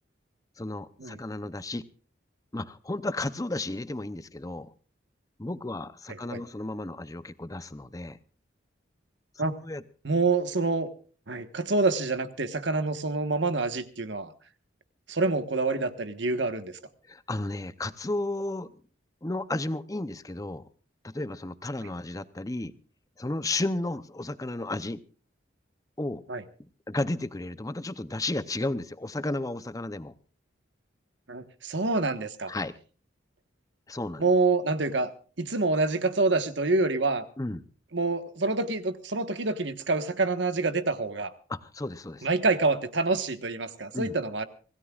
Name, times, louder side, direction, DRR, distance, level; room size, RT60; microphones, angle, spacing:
voice 1, 0.6-1.9 2.5-4.7 5.4-8.2 9.3-9.8 17.1-18.7 19.2-20.6 21.0-22.7 23.2-25.0 26.0-26.2 26.9-30.1 32.5-32.8 33.9-34.3 37.4-37.6 41.5-42.3 43.9-44.2, left 2 dB, 20° left, 14 dB, 0.6 m, -33 dB
voice 2, 10.0-10.9 11.3-14.3 15.1-16.8 26.3-26.4 31.3-32.5 34.2-35.1 35.4-37.2 37.9-41.3 42.2-44.4, right 3 dB, 70° right, 10 dB, 1.3 m, -27 dB
26.0 x 17.0 x 2.4 m, 0.39 s
head